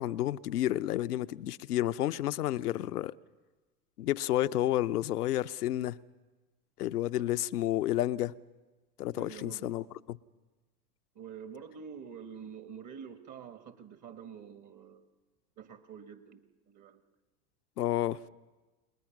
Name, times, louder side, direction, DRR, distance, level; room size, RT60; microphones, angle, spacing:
voice 1, 0.0-3.2 4.0-6.0 6.8-8.3 9.0-10.2 17.8-18.2, left 14 dB, 80° left, 0.8 m, -30 dB
voice 2, 9.1-9.9 11.2-15.0 15.6-16.4 16.7-17.0, right 7 dB, 40° right, 1.9 m, -47 dB
29.0 x 20.5 x 6.0 m
hypercardioid pair, 85°, 46 cm